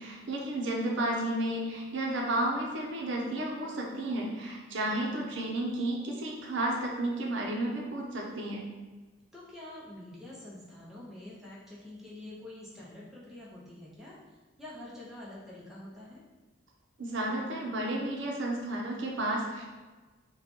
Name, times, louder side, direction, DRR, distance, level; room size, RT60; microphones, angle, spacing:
voice 1, 0.0-8.6 17.0-19.7, right 1 dB, 70° right, -1 dB, 0.6 m, -32 dB
voice 2, 9.3-14.2 14.6-16.2, left 1 dB, ahead, -7 dB, 0.6 m, -47 dB
2.8 x 2.2 x 4.1 m, 1.3 s
head